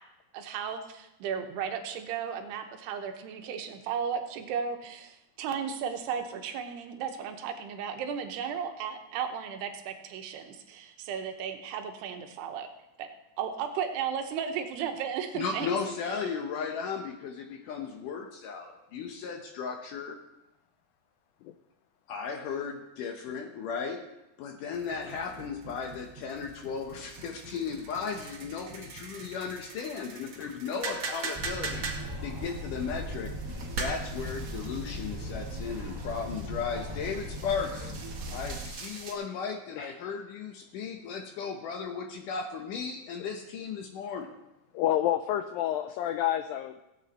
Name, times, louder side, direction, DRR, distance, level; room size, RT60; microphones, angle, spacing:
voice 1, 0.3-12.7 13.0-13.1 13.4-15.7 16.0-16.2, right 7 dB, 85° right, 5 dB, 3.1 m, -35 dB
voice 2, 15.3-20.2 22.1-24.1 24.4-31.9 32.2-33.3 33.8-44.3, left 6 dB, 70° left, 4 dB, 2.1 m, -35 dB
sound 1, 24.7-39.1, right 4 dB, 55° right, 1.4 m, -42 dB
sound 2, 31.3-38.7, equal, 35° right, 0.4 m, -38 dB
voice 3, 44.7-46.8, left 12 dB, 85° left, 9 dB, 2.0 m, -29 dB
16.5 x 8.5 x 4.1 m, 0.91 s
omnidirectional pair, 4.6 m